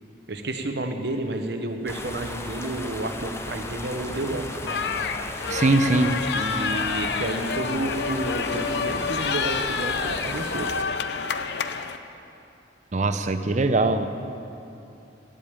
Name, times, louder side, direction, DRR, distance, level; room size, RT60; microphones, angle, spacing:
voice 1, 0.3-4.7 6.3-10.9, right 2 dB, 60° right, 5 dB, 0.9 m, -30 dB
sound 1, 1.9-10.8, left 2 dB, 15° left, 0.6 m, -35 dB
sound 2, 4.7-12.0, left 5 dB, 60° left, 0.5 m, -28 dB
voice 2, 5.5-6.2 12.9-14.1, right 2 dB, 40° right, 9 dB, 0.5 m, -21 dB
16.0 x 5.3 x 8.7 m, 2.8 s
head